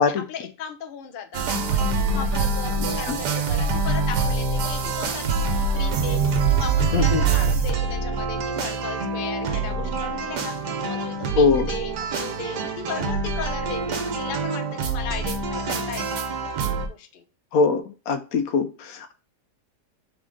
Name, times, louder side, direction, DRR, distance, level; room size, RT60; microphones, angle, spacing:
voice 1, 0.0-16.3 16.9-17.2, left 6 dB, 90° left, 6 dB, 0.4 m, -36 dB
sound 1, 1.3-16.9, right 4 dB, 75° right, 1.3 m, -25 dB
voice 2, 6.9-7.2 11.4-11.7 17.5-19.1, left 5 dB, 70° left, 8 dB, 0.9 m, -22 dB
3.7 x 3.7 x 3.4 m, 0.35 s
omnidirectional pair, 1.8 m